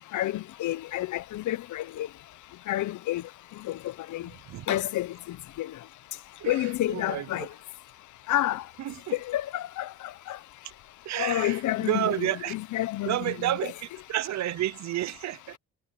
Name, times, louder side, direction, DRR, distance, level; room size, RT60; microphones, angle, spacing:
voice 1, 0.1-2.1 2.7-3.2 3.7-3.8 4.1-4.2 4.7-5.1 5.6-5.7 6.5-7.5 8.3-8.6 9.3-9.9 10.3-10.4 11.2-13.7, left 14 dB, 75° left, 1.0 m, -29 dB
voice 2, 6.9-7.2 8.9-9.1 11.1-12.5 13.1-13.7 14.1-15.6, right 13 dB, 65° right, 0.7 m, -30 dB
cardioid pair, 90°, 30 cm